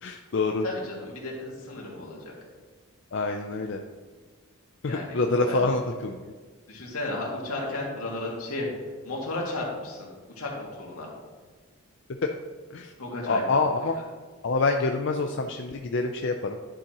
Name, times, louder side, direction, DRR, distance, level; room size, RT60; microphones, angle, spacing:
voice 1, 0.0-0.7 3.1-3.8 4.8-6.3 12.2-12.3 12.7-12.9 13.3-13.9 14.4-16.6, left 3 dB, 55° left, 4 dB, 0.5 m, -26 dB
voice 2, 0.6-2.3 4.9-5.2 5.5-5.6 6.7-8.7 9.0-10.1 10.4-11.1 13.0-13.4 13.8-14.0, left 2 dB, 85° left, -3 dB, 2.3 m, -34 dB
11.5 x 7.3 x 3.0 m, 1.4 s
head